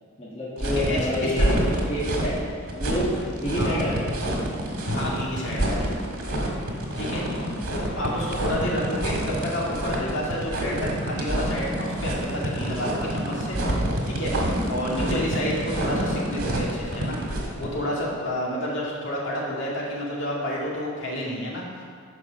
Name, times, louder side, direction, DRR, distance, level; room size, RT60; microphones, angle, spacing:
voice 1, 0.2-2.4 2.7-4.1 6.8-7.2 14.5-14.6 17.6-17.7, left 1 dB, 25° left, -7 dB, 1.4 m, -29 dB
sound 1, 0.6-17.7, right 1 dB, 85° right, 1.7 m, -27 dB
voice 2, 0.8-1.5 3.6-3.8 4.9-5.9 7.0-7.2 7.9-13.6 14.1-21.6, equal, 60° left, -5 dB, 2.1 m, -30 dB
9.8 x 4.9 x 6.3 m, 2.1 s
head